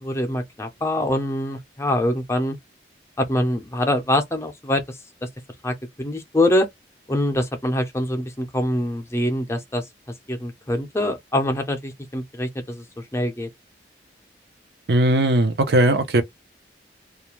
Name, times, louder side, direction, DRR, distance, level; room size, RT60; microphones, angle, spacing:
voice 1, 0.0-2.6 3.2-4.8 5.6-6.7 7.1-9.9 10.3-12.8 13.1-13.5, left 1 dB, 15° left, 0.5 m, -24 dB
voice 2, 14.9-16.2, right 1 dB, 65° right, 0.6 m, -18 dB
2.3 x 2.1 x 2.9 m
head